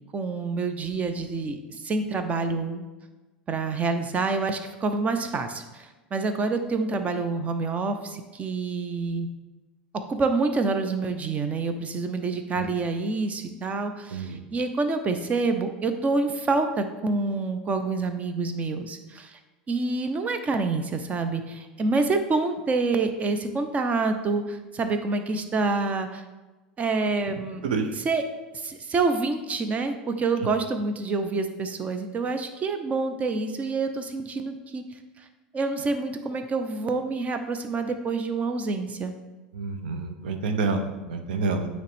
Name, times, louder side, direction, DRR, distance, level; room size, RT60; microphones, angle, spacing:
voice 1, 0.1-2.8 3.5-9.3 9.9-19.4 19.7-26.2 26.8-27.6 27.9-28.3 28.5-34.8 35.5-39.1, right 3 dB, 30° right, 8 dB, 0.7 m, -27 dB
voice 2, 39.5-41.7, right 4 dB, 70° right, 6 dB, 0.7 m, -28 dB
9.0 x 3.1 x 3.5 m, 1.2 s
hypercardioid pair, 80°, 5 cm